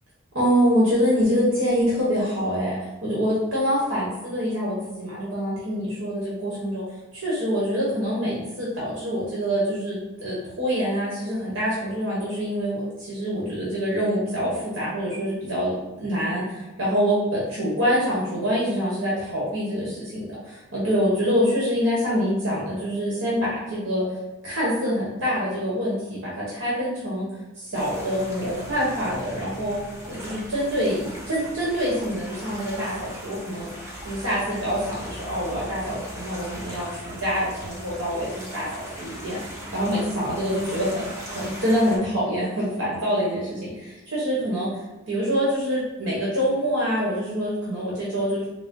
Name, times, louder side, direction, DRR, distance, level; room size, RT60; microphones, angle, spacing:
voice 1, 0.3-6.8 7.1-24.0 24.4-26.0 26.2-27.3 27.6-29.8 30.1-33.7 34.0-39.4 39.7-44.7 45.1-48.4, equal, 75° right, -7 dB, 1.1 m, -25 dB
sound 1, 27.7-42.0, equal, 15° right, 0.8 m, -39 dB
3.8 x 2.0 x 3.6 m, 1.1 s
head